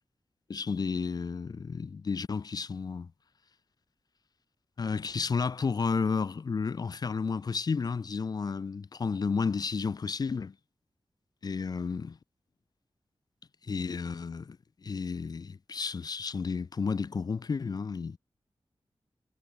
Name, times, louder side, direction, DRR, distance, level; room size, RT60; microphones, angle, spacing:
voice 1, 0.5-3.1 4.8-10.5 11.4-12.2 13.6-14.6 14.8-18.2, left 5 dB, 40° left, 0.4 m, -32 dB
wide cardioid pair, 130°, 10 cm